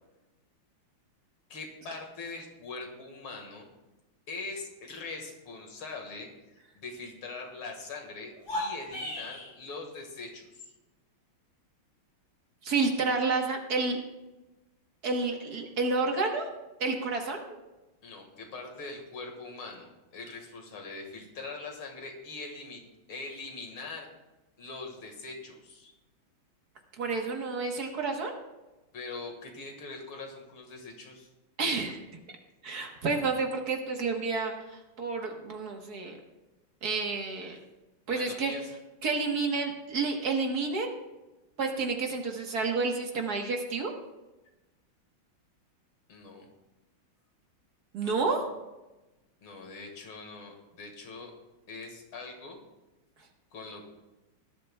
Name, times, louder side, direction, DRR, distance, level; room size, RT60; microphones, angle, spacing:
voice 1, 1.5-3.7 4.3-10.7 18.0-22.8 23.1-24.1 24.6-25.9 28.9-31.3 37.5-37.6 38.1-38.7 46.1-46.5 48.0-48.3 49.4-51.3 51.7-52.6 53.5-53.9, left 3 dB, 85° left, 2 dB, 2.7 m, -42 dB
sound 1, 8.3-9.5, left 1 dB, 50° left, 4.6 m, -35 dB
voice 2, 12.6-14.0 15.0-16.5 16.8-17.6 27.0-28.4 31.6-32.0 32.6-36.1 36.8-37.6 38.1-38.5 39.0-40.9 41.6-43.9 47.9-48.4, right 4 dB, 55° right, 2 dB, 1.7 m, -30 dB
18.5 x 12.0 x 2.3 m, 1.0 s
omnidirectional pair, 2.2 m